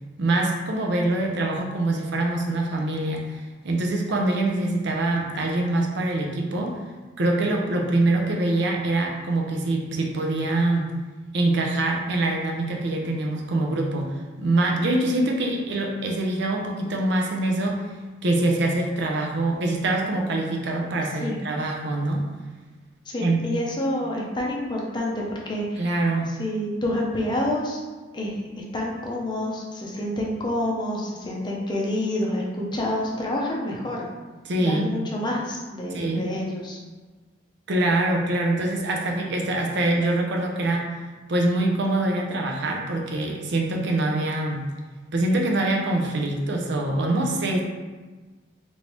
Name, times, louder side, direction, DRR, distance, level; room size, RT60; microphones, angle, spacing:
voice 1, 0.2-6.8 7.2-10.9 11.3-17.9 18.2-22.2 23.2-23.4 25.8-26.3 34.4-34.9 35.9-36.2 37.7-40.9 41.3-44.7 45.1-47.6, right 2 dB, 60° right, 1 dB, 0.5 m, -24 dB
voice 2, 23.1-25.8 26.4-27.8 28.1-28.3 28.7-34.1 34.6-36.8, left 1 dB, 25° left, -2 dB, 0.6 m, -28 dB
3.3 x 2.6 x 3.0 m, 1.3 s
head